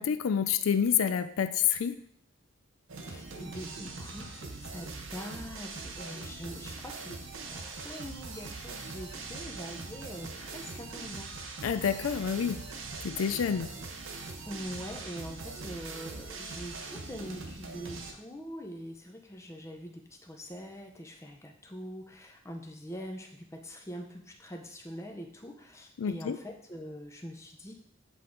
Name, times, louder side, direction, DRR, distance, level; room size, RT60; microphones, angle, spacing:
voice 1, 0.0-2.0 11.6-12.6 13.0-13.7 26.0-26.4, left 7 dB, 80° left, 11 dB, 0.4 m, -28 dB
sound 1, 2.9-18.1, right 3 dB, 70° right, 0.8 m, -42 dB
voice 2, 3.1-7.2 7.4-11.3 14.5-27.8, equal, 15° left, 2 dB, 0.7 m, -43 dB
7.6 x 3.6 x 3.9 m, 0.68 s
head